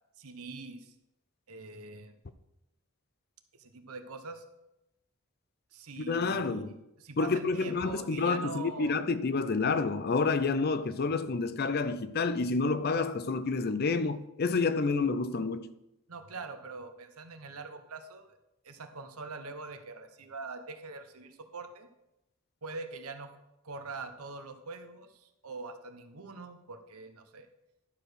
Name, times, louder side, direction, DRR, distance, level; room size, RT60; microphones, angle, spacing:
voice 1, 0.2-0.9 1.5-2.1 3.5-4.4 5.7-9.0 16.1-18.4 18.6-21.9 22.6-23.4 23.6-27.5, right 3 dB, 85° right, 1.0 m, -43 dB
voice 2, 6.0-6.8 7.2-15.7, left 4 dB, 45° left, 0.5 m, -29 dB
11.5 x 5.0 x 6.3 m
head